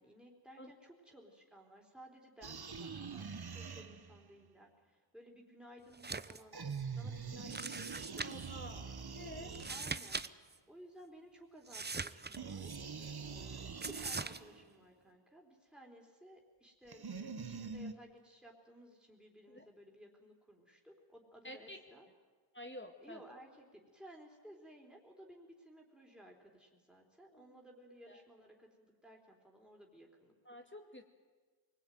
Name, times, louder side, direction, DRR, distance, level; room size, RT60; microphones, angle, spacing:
voice 1, 0.0-6.6 6.9-9.0 9.7-10.3 10.7-12.7 13.0-22.1 23.0-30.6, equal, ahead, -1 dB, 3.8 m, -58 dB
sound 1, 2.4-4.3 6.5-10.2 12.4-14.6 16.9-17.9, right 5 dB, 50° right, 1.3 m, -44 dB
sound 2, 5.9-6.4 6.7-6.8 7.5-8.5 9.5-10.3 10.5-10.6 11.7-12.8 13.8-14.4, right 3 dB, 20° right, 0.7 m, -41 dB
voice 2, 8.2-9.5 19.5-19.7 21.4-21.8 22.5-23.2 27.3-27.4 28.1-28.2 30.5-31.0, left 1 dB, 25° left, 3 dB, 2.0 m, -50 dB
24.0 x 20.0 x 9.3 m, 1.4 s
wide cardioid pair, 65°, 48 cm